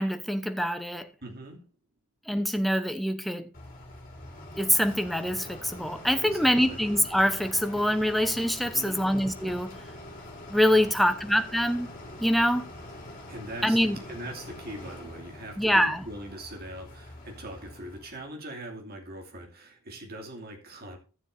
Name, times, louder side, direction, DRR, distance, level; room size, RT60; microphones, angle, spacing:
voice 1, 0.0-1.1 2.3-3.5 4.6-9.8 10.5-11.9 12.2-12.7 13.6-14.0 15.6-16.0, equal, ahead, 0.9 m, -25 dB
voice 2, 1.2-1.7 6.2-6.8 8.6-9.1 13.0-21.0, right 1 dB, 45° right, 2.7 m, -42 dB
sound 1, 3.5-18.2, left 1 dB, 40° left, 3.4 m, -44 dB
15.5 x 7.1 x 2.7 m
head